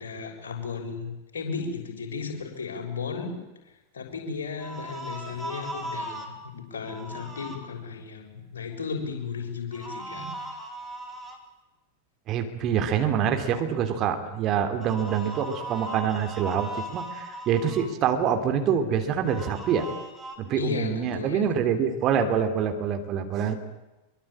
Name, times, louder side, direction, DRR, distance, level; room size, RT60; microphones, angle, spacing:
voice 1, 0.0-3.4 3.9-10.6 20.5-21.4, left 5 dB, 65° left, 2 dB, 6.8 m, -35 dB
sound 1, 4.6-6.3 6.8-7.6 9.7-11.4 14.8-17.9 19.2-20.4, right 1 dB, 5° right, 4.6 m, -38 dB
voice 2, 12.3-19.9 20.4-23.5, right 8 dB, 35° right, 6 dB, 3.3 m, -26 dB
25.0 x 23.5 x 8.9 m, 1.0 s
figure-of-eight pair, 90°, 0 cm